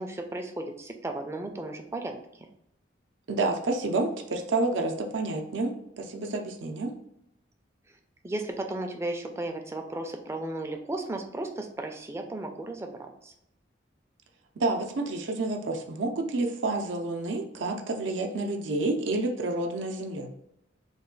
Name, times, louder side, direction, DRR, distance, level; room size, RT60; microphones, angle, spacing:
voice 1, 0.0-2.2 8.2-13.3, right 2 dB, 15° right, 4 dB, 0.3 m, -35 dB
voice 2, 3.3-6.9 14.6-20.3, right 2 dB, 85° right, 3 dB, 0.5 m, -29 dB
3.2 x 2.2 x 3.7 m, 0.80 s
head